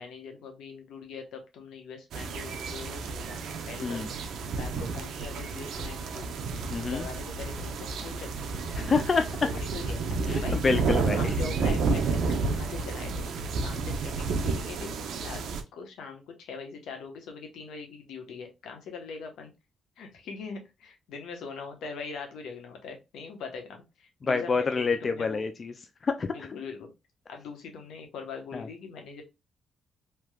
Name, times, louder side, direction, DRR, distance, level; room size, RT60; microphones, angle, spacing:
voice 1, 0.0-4.2 4.6-6.3 6.5-8.8 9.4-10.0 10.4-10.6 11.0-13.3 13.6-15.4 15.7-19.5 20.0-25.4 26.3-26.9 27.3-29.2, left 5 dB, 85° left, 4 dB, 1.0 m, -42 dB
sound 1, 2.1-15.6, right 4 dB, 75° right, 0.5 m, -31 dB
voice 2, 6.7-7.1 8.7-9.3 10.3-11.3 24.2-25.7 26.0-26.5 28.5-28.7, left 4 dB, 40° left, 8 dB, 0.4 m, -27 dB
3.3 x 2.9 x 2.2 m, 0.24 s
cardioid pair, 85°, 0 cm